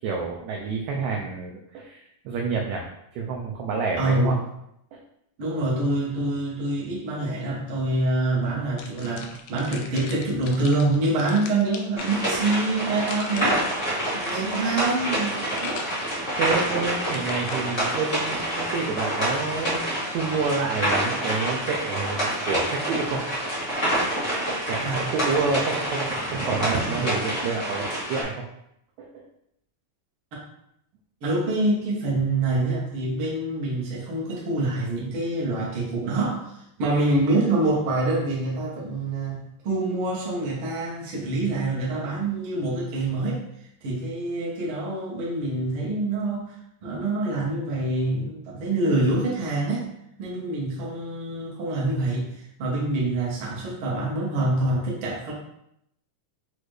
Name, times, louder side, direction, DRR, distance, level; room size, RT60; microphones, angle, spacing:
voice 1, 0.0-2.9 3.1-4.4 4.9-5.0 14.3-14.6 16.3-23.2 24.7-28.4 29.0-29.3, right 4 dB, 80° right, 0 dB, 1.7 m, -28 dB
voice 2, 4.0-4.4 5.4-13.6 14.1-15.8 24.8-25.0 31.2-36.5 36.8-43.4 43.8-46.6 46.8-49.9 50.2-52.3 52.6-55.3, right 2 dB, 60° right, -4 dB, 1.5 m, -26 dB
sound 1, 8.8-17.6, left 5 dB, 80° left, 2.0 m, -40 dB
sound 2, 12.0-28.2, right 1 dB, 60° left, 0.5 m, -27 dB
6.2 x 2.5 x 3.2 m, 0.77 s
omnidirectional pair, 3.7 m